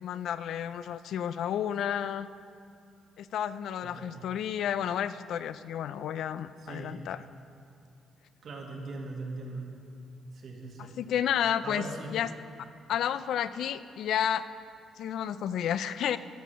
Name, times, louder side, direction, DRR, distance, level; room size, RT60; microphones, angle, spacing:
voice 1, 0.0-2.3 3.2-7.2 10.8-11.8 12.1-12.3 12.9-14.4 15.0-16.2, left 9 dB, 75° left, 14 dB, 0.3 m, -31 dB
voice 2, 3.8-4.2 6.6-7.0 8.4-9.7 10.3-11.0 11.6-12.2, right 3 dB, 60° right, 0 dB, 1.8 m, -40 dB
12.5 x 6.4 x 5.6 m, 2.5 s
cardioid pair, 90°, 0 cm